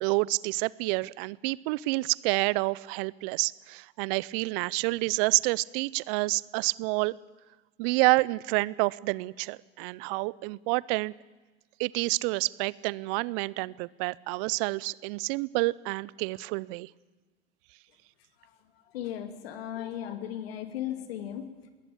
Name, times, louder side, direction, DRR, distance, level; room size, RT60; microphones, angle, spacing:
voice 1, 0.0-7.2 7.8-11.1 11.8-16.9, right 24 dB, 65° right, 24 dB, 0.7 m, -28 dB
voice 2, 18.9-21.7, left 11 dB, 80° left, 9 dB, 2.6 m, -36 dB
20.5 x 18.5 x 8.6 m, 1.2 s
hypercardioid pair, 75°, 30 cm